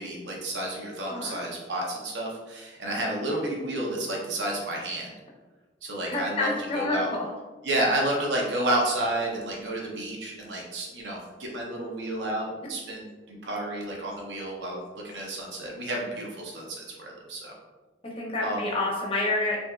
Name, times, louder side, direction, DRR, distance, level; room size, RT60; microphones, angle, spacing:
voice 1, 0.0-5.1 5.8-7.1 7.6-14.8 15.0-17.5 18.4-18.6, right 1 dB, 75° right, -2 dB, 0.6 m, -31 dB
voice 2, 1.0-1.4 6.1-7.2 18.0-19.6, left 2 dB, 30° left, -2 dB, 0.6 m, -28 dB
3.3 x 2.6 x 2.3 m, 1.2 s
head